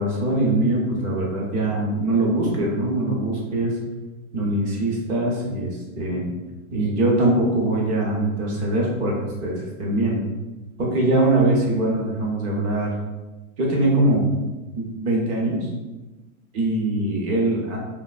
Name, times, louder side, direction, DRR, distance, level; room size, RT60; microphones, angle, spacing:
voice 1, 0.0-3.7 4.3-5.7 6.0-6.3 6.7-9.1 9.4-10.2 10.8-12.9 13.6-14.2 14.7-15.7 16.5-17.8, right 1 dB, 20° right, -2 dB, 0.4 m, -22 dB
3.3 x 2.6 x 2.3 m, 1.1 s
supercardioid pair, 140°, 44 cm